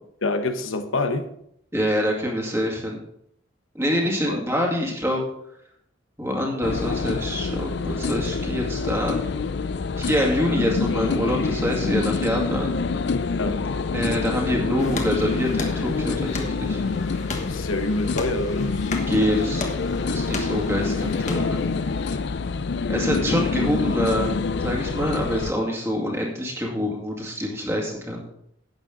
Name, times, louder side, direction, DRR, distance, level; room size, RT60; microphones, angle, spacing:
voice 1, 0.2-1.3 4.0-4.4 13.4-13.6 17.4-18.8, left 2 dB, 90° left, 1.0 m, -26 dB
voice 2, 1.7-3.0 3.7-5.2 6.2-9.2 10.0-12.7 13.9-16.8 19.1-19.7 20.0-21.6 22.9-24.3 24.6-28.3, equal, 15° right, 2.2 m, -25 dB
sound 1, 6.6-25.5, left 4 dB, 55° left, 0.4 m, -26 dB
sound 2, 14.8-22.2, left 3 dB, 35° left, 1.3 m, -36 dB
11.5 x 8.8 x 3.8 m
head